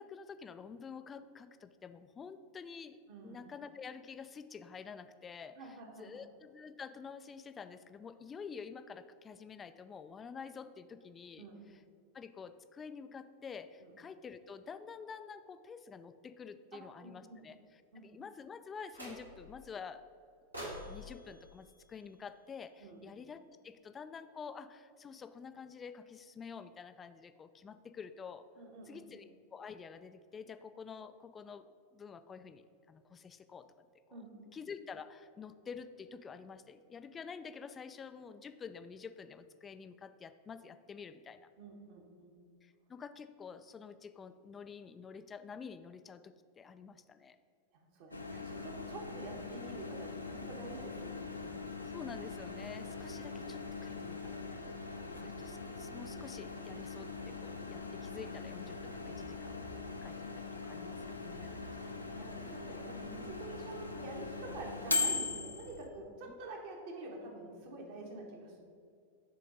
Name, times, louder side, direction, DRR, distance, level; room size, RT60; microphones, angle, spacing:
voice 1, 0.0-11.8 12.1-20.0 20.9-28.4 28.8-31.7 31.9-34.2 34.5-41.5 42.6-47.4 49.4-49.5 51.8-54.6 55.2-59.6 60.0-60.3 60.6-61.6, left 6 dB, 20° left, 12 dB, 0.3 m, -49 dB
voice 2, 3.1-3.4 5.6-6.3 11.4-11.6 13.8-13.9 16.7-17.4 17.9-18.1 22.8-23.0 28.6-29.2 34.1-34.5 41.6-42.3 47.7-51.4 53.0-53.1 55.0-55.2 61.5-68.6, right 2 dB, 50° right, 1 dB, 1.3 m, -48 dB
sound 1, 18.9-19.6 20.5-22.8, equal, 85° right, 1.5 m, -48 dB
Microwave oven, 48.1-65.9, left 3 dB, 85° left, 0.6 m, -41 dB
6.6 x 3.8 x 5.1 m, 2.3 s
figure-of-eight pair, 90°, 0 cm